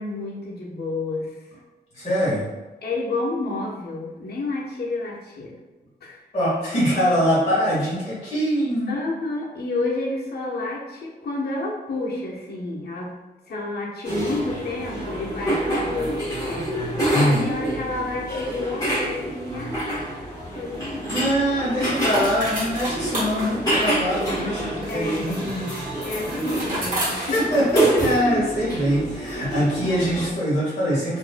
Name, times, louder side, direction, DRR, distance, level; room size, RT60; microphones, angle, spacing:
voice 1, 0.0-1.4 2.8-5.5 6.0-6.2 8.9-13.1 13.5-16.7 17.2-21.3 21.8-22.1 24.9-25.3 26.0-27.4 27.7-28.0 28.4-28.5, left 2 dB, 65° left, -4 dB, 1.0 m, -30 dB
voice 2, 1.9-2.5 6.3-8.9 17.1-17.5 21.1-25.7 27.0-31.2, equal, 35° left, -11 dB, 1.4 m, -23 dB
sound 1, 14.0-30.3, right 1 dB, 20° left, 1.3 m, -27 dB
sound 2, 20.6-28.3, right 1 dB, 50° right, 1.3 m, -33 dB
4.5 x 2.6 x 2.2 m, 1.2 s
wide cardioid pair, 180°, 17 cm